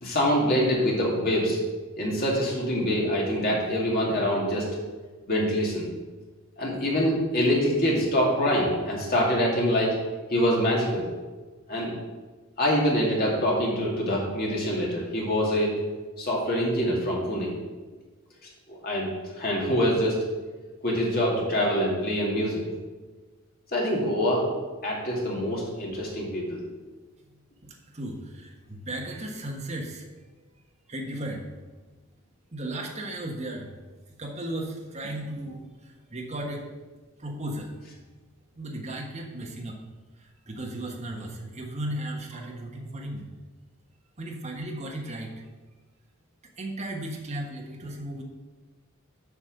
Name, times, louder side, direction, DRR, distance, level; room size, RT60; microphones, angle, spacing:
voice 1, 0.0-1.6 2.0-4.7 5.3-5.9 6.6-10.0 10.3-11.1 11.7-11.9 12.6-15.7 16.2-17.5 18.7-19.1 19.4-20.2 20.8-22.6 23.7-24.5 24.8-26.6, equal, 45° left, -3 dB, 2.5 m, -25 dB
voice 2, 27.6-30.1 30.9-31.5 32.5-33.7 34.2-36.7 37.2-37.8 38.5-39.8 40.2-43.3 44.2-45.3 46.6-48.2, right 1 dB, 30° right, 0 dB, 1.3 m, -35 dB
8.3 x 5.3 x 6.4 m, 1.3 s
head